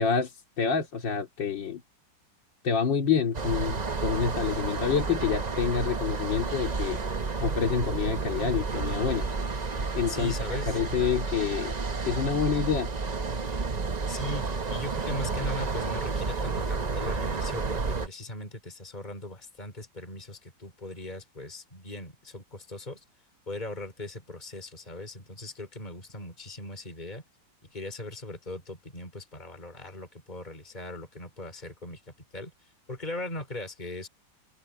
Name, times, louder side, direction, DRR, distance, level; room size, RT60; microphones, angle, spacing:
voice 1, 0.0-1.8 2.6-7.0 7.4-9.3 9.9-10.3 10.7-11.7 12.0-12.9, left 6 dB, 85° left, 3.3 m, -27 dB
sound 1, 3.3-18.1, right 4 dB, 30° right, 0.9 m, -31 dB
voice 2, 10.1-10.8 14.1-23.0 23.5-27.2 27.6-32.0 32.3-32.5 32.9-34.1, left 1 dB, 25° left, 4.1 m, -39 dB
omnidirectional pair, 2.0 m